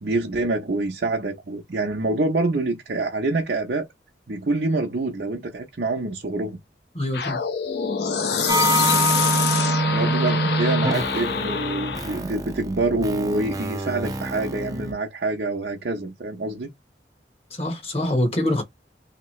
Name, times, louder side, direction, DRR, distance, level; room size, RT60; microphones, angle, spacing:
voice 1, 0.0-3.9 4.3-6.6 9.9-16.7, right 2 dB, 55° right, 0.7 m, -26 dB
voice 2, 6.9-7.4 17.5-18.6, left 1 dB, 35° left, 1.0 m, -24 dB
sound 1, 7.1-12.2, left 6 dB, 65° left, 0.6 m, -25 dB
sound 2, 8.5-14.9, right 2 dB, 20° right, 0.5 m, -25 dB
3.3 x 2.9 x 3.1 m
head